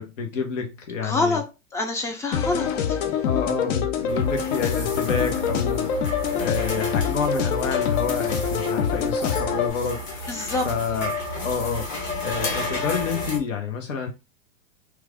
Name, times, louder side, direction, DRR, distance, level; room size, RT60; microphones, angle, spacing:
voice 1, 0.0-1.4 3.3-6.0 6.3-10.3 10.6-11.2 11.4-14.1, left 5 dB, 70° left, 1.1 m, -29 dB
voice 2, 1.0-1.4 1.7-3.0 10.3-10.7, left 3 dB, 10° left, 0.4 m, -26 dB
sound 1, 2.3-9.7, left 7 dB, 55° left, 0.6 m, -25 dB
sound 2, 4.1-13.4, left 2 dB, 30° left, 1.1 m, -32 dB
3.2 x 2.4 x 3.5 m
hypercardioid pair, 115°, 39 cm